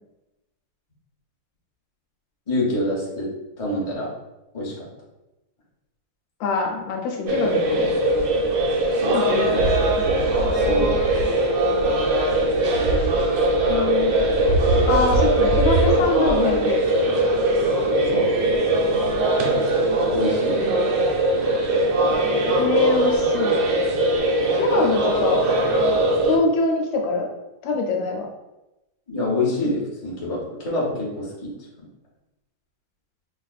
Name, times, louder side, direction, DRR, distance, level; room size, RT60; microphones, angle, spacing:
voice 1, 2.5-3.3 3.6-4.1 4.5-4.7 9.0-9.1 10.5-11.0 18.1-18.2 20.1-20.6 29.1-31.5, left 2 dB, 30° left, -5 dB, 0.7 m, -25 dB
voice 2, 6.4-7.9 9.1-10.0 13.7-14.2 14.9-17.1 17.3-17.4 22.6-23.6 24.5-25.4 26.3-27.3 27.6-28.3, left 3 dB, 85° left, 1 dB, 1.4 m, -24 dB
sound 1, 7.3-26.4, right 1 dB, 80° right, 1.3 m, -20 dB
4.8 x 2.5 x 2.4 m, 0.97 s
omnidirectional pair, 2.0 m